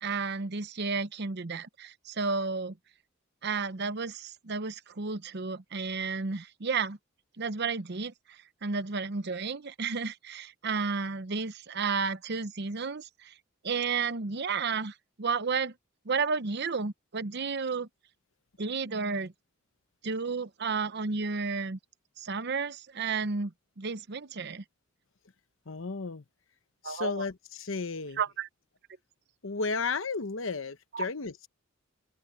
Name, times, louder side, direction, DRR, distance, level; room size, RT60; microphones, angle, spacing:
voice 1, 0.0-2.8 3.4-7.0 7.4-13.3 13.6-15.7 16.0-17.9 18.6-19.3 20.0-21.8 22.2-24.6 26.8-27.2 28.2-28.5 30.9-31.1, right 4 dB, 55° right, 0.8 m, -32 dB
voice 2, 25.7-26.2 26.8-28.2 29.4-31.5, left 4 dB, 70° left, 1.0 m, -33 dB
open air
head